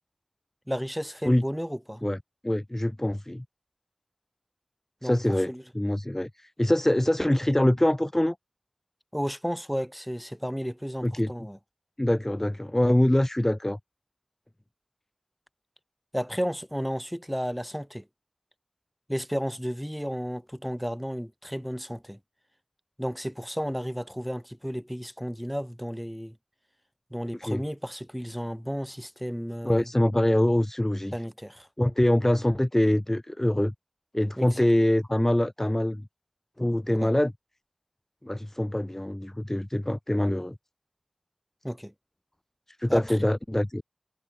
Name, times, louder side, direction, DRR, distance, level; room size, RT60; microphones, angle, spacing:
voice 1, 0.7-2.0 5.0-5.6 9.1-11.6 16.1-18.1 19.1-22.2 23.0-26.4 27.1-29.9 31.1-31.7 34.4-34.7 36.9-37.1 41.6-41.9 42.9-43.2, equal, ahead, 3.5 m, -33 dB
voice 2, 2.4-3.4 5.0-8.4 11.0-11.3 12.0-13.8 27.4-27.6 29.6-31.1 31.8-33.7 34.1-36.1 36.6-37.3 38.2-40.6 42.8-43.8, left 1 dB, 15° left, 0.8 m, -24 dB
wide cardioid pair, 50°, 2 cm